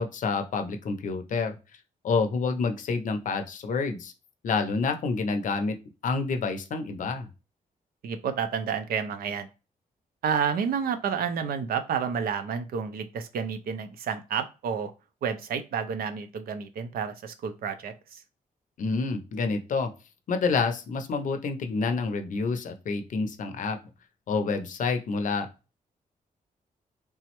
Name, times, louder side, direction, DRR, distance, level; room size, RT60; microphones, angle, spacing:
voice 1, 0.0-1.6 2.0-4.1 4.4-5.8 6.0-7.3 18.8-19.9 20.3-23.8 24.3-25.5, left 4 dB, 60° left, 7 dB, 0.5 m, -28 dB
voice 2, 8.0-9.5 10.2-14.9 15.2-18.2, right 7 dB, 85° right, 9 dB, 0.5 m, -30 dB
3.3 x 2.0 x 2.9 m, 0.30 s
wide cardioid pair, 145°, 15 cm